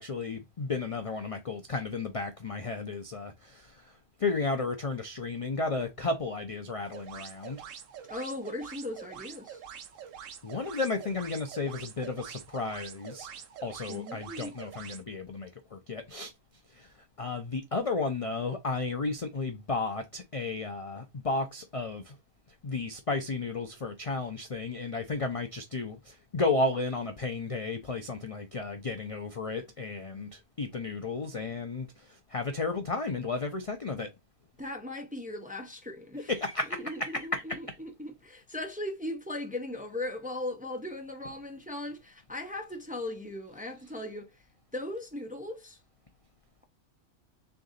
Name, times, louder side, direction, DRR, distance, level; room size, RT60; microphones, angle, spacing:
voice 1, 0.0-7.6 10.4-13.3 13.6-16.3 16.7-22.2 22.5-34.1 36.3-37.8, left 3 dB, 45° left, 0.4 m, -33 dB
sound 1, 6.9-15.0, right 8 dB, 75° right, 1.1 m, -46 dB
voice 2, 8.1-9.6 13.9-14.6 34.6-36.3 36.7-44.3 44.7-45.8, left 1 dB, 10° right, 0.6 m, -38 dB
3.8 x 3.4 x 4.0 m
omnidirectional pair, 1.3 m